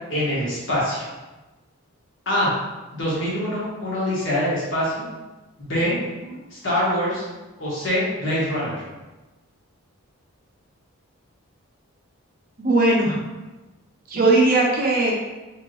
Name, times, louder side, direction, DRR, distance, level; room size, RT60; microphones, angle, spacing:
voice 1, 0.1-1.1 2.2-2.5 2.9-5.0 5.6-5.9 6.5-7.3 7.6-8.8, equal, 55° left, -7 dB, 1.4 m, -24 dB
voice 2, 12.6-13.2 14.1-15.1, right 2 dB, 40° right, -2 dB, 0.6 m, -18 dB
3.5 x 3.3 x 3.0 m, 1.1 s
head